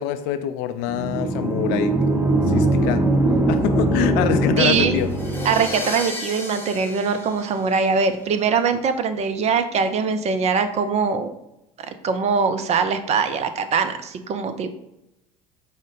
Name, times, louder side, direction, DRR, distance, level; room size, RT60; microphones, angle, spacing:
voice 1, 0.0-1.9 2.5-3.0 3.5-5.1, left 11 dB, 60° left, 10 dB, 0.4 m, -25 dB
sound 1, 0.9-5.8, right 2 dB, 15° right, 0.9 m, -21 dB
voice 2, 4.6-5.0 5.4-11.3 11.8-14.7, right 5 dB, 35° right, 9 dB, 0.4 m, -22 dB
sound 2, 5.0-8.2, left 2 dB, 10° left, 0.9 m, -34 dB
5.0 x 2.1 x 3.8 m, 0.85 s
hypercardioid pair, 70°, 19 cm